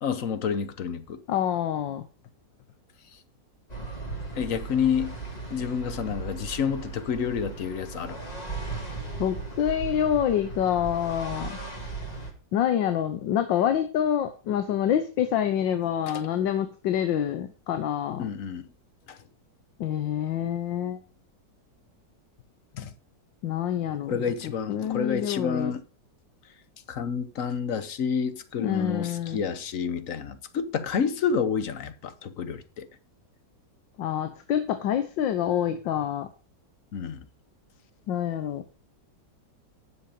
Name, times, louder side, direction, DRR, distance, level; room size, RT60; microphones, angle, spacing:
voice 1, 0.0-1.2 4.3-5.2 5.5-8.2 16.0-16.3 18.2-18.7 19.1-19.2 22.8-22.9 24.1-25.8 26.9-32.9 36.9-37.2, left 6 dB, 55° left, 1.2 m, -29 dB
voice 2, 1.3-2.1 9.2-11.6 12.5-18.3 19.8-21.0 23.4-24.2 24.7-25.7 28.6-29.4 34.0-36.3 38.1-38.6, left 9 dB, 85° left, 1.6 m, -27 dB
sound 1, 3.7-12.3, right 3 dB, 20° left, 2.1 m, -37 dB
10.5 x 6.9 x 5.1 m
omnidirectional pair, 2.0 m